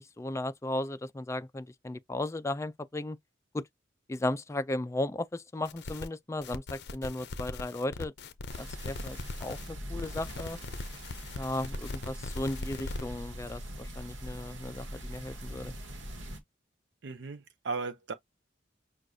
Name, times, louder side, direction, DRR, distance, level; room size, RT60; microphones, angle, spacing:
voice 1, 0.0-3.2 3.5-3.6 4.1-8.1 8.6-10.6 11.4-15.7, left 1 dB, 15° left, 0.4 m, -35 dB
sound 1, 5.6-6.1 6.4-9.7 10.0-13.0, left 3 dB, 60° left, 0.6 m, -40 dB
sound 2, 8.5-16.4, equal, 85° right, 1.2 m, -42 dB
voice 2, 17.0-18.1, right 4 dB, 65° right, 0.6 m, -36 dB
6.2 x 2.4 x 2.6 m
head